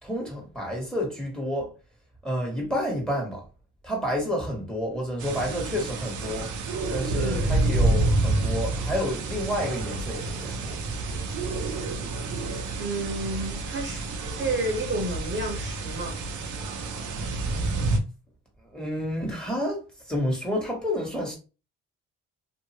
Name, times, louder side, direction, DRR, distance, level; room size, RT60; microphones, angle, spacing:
voice 1, 0.0-1.7 2.2-3.4 3.8-6.5 6.9-10.9 18.6-19.8 20.1-21.4, equal, ahead, 1.4 m, -30 dB
sound 1, 5.2-18.0, right 2 dB, 75° right, 0.7 m, -28 dB
voice 2, 7.1-7.6 12.8-14.0 14.4-16.2, right 2 dB, 40° right, 1.0 m, -31 dB
2.7 x 2.5 x 2.9 m
cardioid pair, 90°, 30 cm